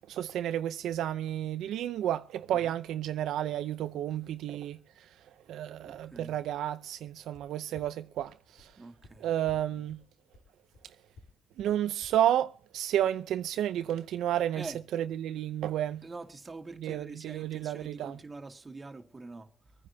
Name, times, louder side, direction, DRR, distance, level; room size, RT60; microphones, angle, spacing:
voice 1, 0.0-4.8 5.5-8.7 9.2-10.0 11.6-16.0 16.7-18.2, right 11 dB, 80° right, 0.6 m, -31 dB
voice 2, 5.8-6.4 8.8-9.8 14.5-14.8 16.0-19.7, right 3 dB, 25° right, 2.1 m, -45 dB
sound 1, 7.3-7.4 7.8-7.9 8.2-8.3 8.6-8.7 9.0-9.1 9.5-9.6 9.9-10.0 10.3-10.4 10.7-10.8 11.2-11.3 11.6-11.7 12.0-12.1, left 3 dB, 65° left, 4.4 m, -52 dB
25.0 x 9.8 x 2.8 m
cardioid pair, 90°, 0 cm